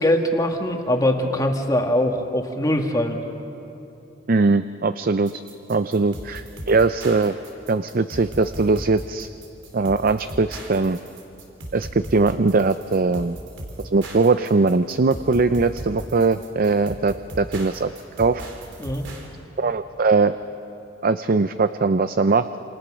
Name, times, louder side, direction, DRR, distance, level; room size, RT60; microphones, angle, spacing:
voice 1, 0.0-3.2 18.8-19.0, left 1 dB, 20° left, 3 dB, 1.9 m, -22 dB
voice 2, 4.3-5.4 5.7-7.4 7.7-9.3 9.7-11.0 11.7-13.4 13.8-17.9 18.2-18.4 19.6-20.3 21.0-22.6, right 3 dB, 50° right, 11 dB, 0.5 m, -20 dB
sound 1, 5.3-19.3, right 1 dB, 75° right, 4.0 m, -37 dB
28.0 x 27.5 x 6.3 m, 3.0 s
head